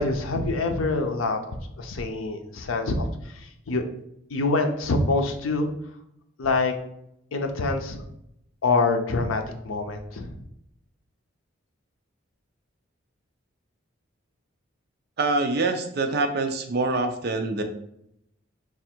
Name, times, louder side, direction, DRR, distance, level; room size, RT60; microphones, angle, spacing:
voice 1, 0.0-3.1 3.3-3.8 4.3-5.7 6.4-6.7 7.3-8.0 8.6-10.4, left 3 dB, 85° left, 5 dB, 0.6 m, -25 dB
voice 2, 15.2-17.6, right 3 dB, 50° right, 6 dB, 0.4 m, -25 dB
3.4 x 2.4 x 4.3 m, 0.77 s
head